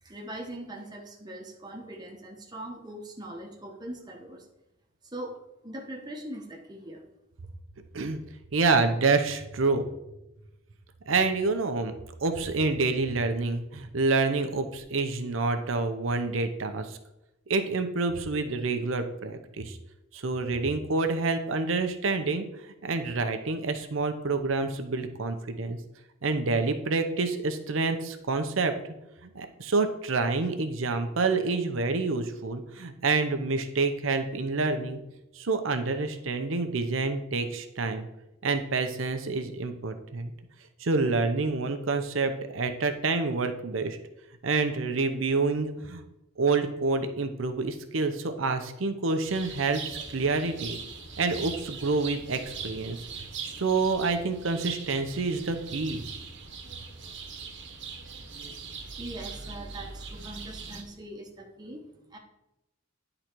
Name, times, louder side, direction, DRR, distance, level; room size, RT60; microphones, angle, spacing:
voice 1, 0.0-4.5 5.0-7.0 59.0-61.8 62.1-62.2, right 1 dB, 20° right, 1 dB, 1.1 m, -41 dB
voice 2, 8.5-9.9 11.1-11.9 12.2-17.0 17.5-19.8 20.1-22.5 22.8-25.8 26.2-28.7 29.2-35.0 35.3-38.1 38.4-40.3 40.8-44.0 44.4-46.0 46.4-50.8 51.2-53.0 53.6-56.0, right 3 dB, 85° right, 7 dB, 0.7 m, -27 dB
sound 1, 49.2-60.8, right 5 dB, 65° right, 1.2 m, -41 dB
10.0 x 3.9 x 4.5 m, 0.90 s
head